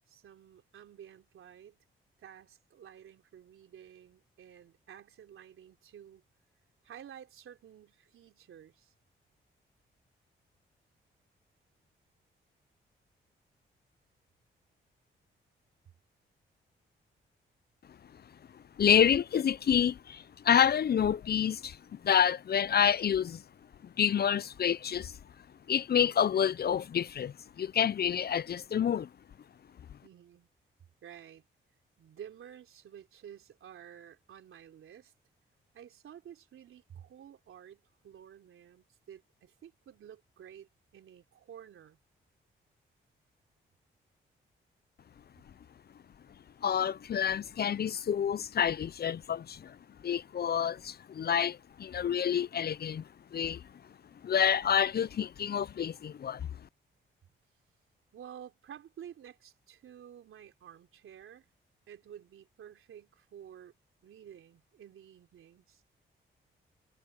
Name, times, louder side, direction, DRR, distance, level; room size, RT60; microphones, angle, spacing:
voice 1, 0.0-1.8 2.2-6.2 6.8-8.9 30.0-30.5 31.0-31.5 32.0-35.1 35.7-42.0 58.1-61.5 61.9-63.7 64.0-65.8, right 9 dB, 75° right, 3.6 m, -52 dB
voice 2, 18.8-21.8 22.0-23.4 24.0-25.2 25.7-29.1 46.6-49.8 50.0-53.0 53.3-53.6 54.2-56.5, left 8 dB, 50° left, 0.5 m, -28 dB
supercardioid pair, 60°, 21 cm